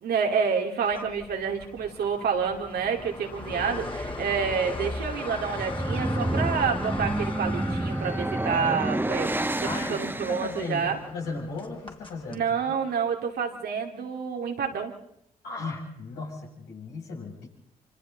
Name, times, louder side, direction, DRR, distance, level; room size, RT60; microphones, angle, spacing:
voice 1, 0.0-11.0 12.3-14.9, right 6 dB, 70° right, 3 dB, 2.5 m, -28 dB
sound 1, 0.9-12.4, left 2 dB, 30° left, 3.4 m, -39 dB
sound 2, 5.4-10.8, right 1 dB, 10° right, 1.2 m, -29 dB
voice 2, 9.6-12.8 15.4-17.5, left 3 dB, 80° left, -4 dB, 7.1 m, -36 dB
26.0 x 25.5 x 4.0 m, 0.72 s
hypercardioid pair, 40°, 17 cm